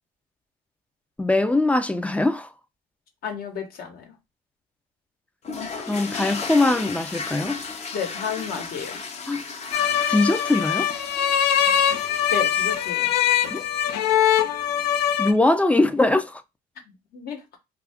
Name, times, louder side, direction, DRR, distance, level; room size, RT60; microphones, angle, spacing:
voice 1, 1.2-2.5 5.9-7.6 9.3-9.4 10.1-10.9 13.5-13.6 15.2-16.4, left 2 dB, 10° left, 0.3 m, -21 dB
voice 2, 3.2-4.1 7.9-9.0 12.3-13.1 16.9-17.4, left 7 dB, 65° left, 1.1 m, -32 dB
sound 1, 5.4-13.9, left 4 dB, 40° left, 0.6 m, -35 dB
sound 2, 9.7-15.3, left 9 dB, 80° left, 0.5 m, -22 dB
2.7 x 2.3 x 3.4 m
cardioid pair, 110°, 17 cm